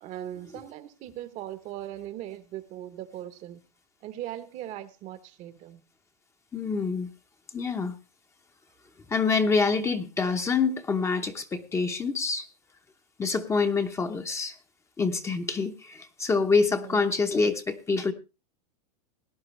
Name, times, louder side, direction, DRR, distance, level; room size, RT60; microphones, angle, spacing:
voice 1, 0.0-3.6 4.0-5.8 16.7-17.2, right 12 dB, 35° right, 1.0 m, -39 dB
voice 2, 6.5-7.1 7.5-7.9 9.1-12.5 13.2-14.6 15.0-18.1, left 4 dB, 15° left, 0.8 m, -26 dB
18.0 x 10.5 x 3.2 m
supercardioid pair, 140°, 20 cm